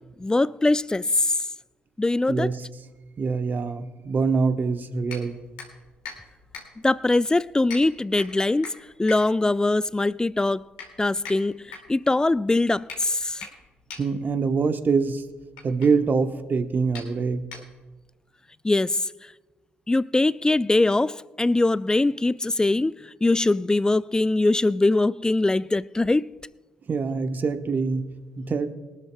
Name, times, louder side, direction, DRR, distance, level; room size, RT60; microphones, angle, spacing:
voice 1, 0.2-1.4 2.0-2.5 6.8-10.7 11.0-13.5 18.6-19.1 19.9-26.4, left 2 dB, 15° left, 0.3 m, -22 dB
voice 2, 2.3-2.6 3.2-5.4 14.0-15.2 15.6-17.6 26.8-28.7, right 4 dB, 40° right, 1.1 m, -25 dB
sound 1, 5.0-18.1, left 5 dB, 75° left, 2.3 m, -44 dB
22.5 x 12.5 x 2.3 m
figure-of-eight pair, 45°, 5 cm